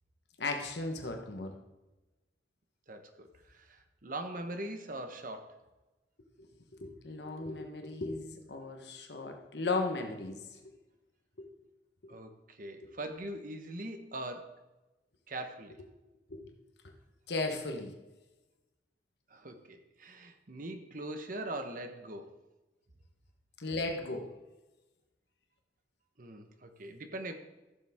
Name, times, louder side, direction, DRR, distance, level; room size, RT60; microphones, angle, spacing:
voice 1, 0.4-1.5 6.8-10.4 11.4-11.5 12.8-12.9 16.3-16.5 17.3-17.9 23.6-24.3, left 3 dB, 70° left, 3 dB, 1.2 m, -36 dB
voice 2, 2.9-5.6 12.1-14.6 15.3-15.8 19.3-22.3 26.2-27.3, right 1 dB, 50° right, 6 dB, 1.1 m, -42 dB
14.5 x 7.1 x 3.6 m, 1.1 s
head